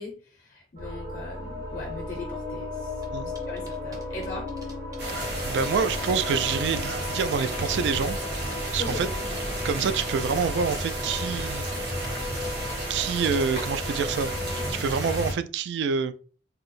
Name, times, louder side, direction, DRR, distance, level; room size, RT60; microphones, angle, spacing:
voice 1, 0.0-2.9 3.5-4.5 8.8-9.1, left 2 dB, 45° left, 0.5 m, -39 dB
sound 1, 0.8-14.7, left 2 dB, 50° right, 0.7 m, -35 dB
sound 2, 3.0-8.1 8.4-9.1 9.3-10.1 10.4-12.2, right 2 dB, 20° right, 0.5 m, -48 dB
sound 3, 5.0-15.3, right 1 dB, 70° right, 1.1 m, -32 dB
voice 2, 5.1-8.2 8.7-9.1 9.6-11.7 12.9-14.3 14.8-16.1, right 6 dB, 85° right, 0.3 m, -27 dB
2.7 x 2.0 x 4.0 m
head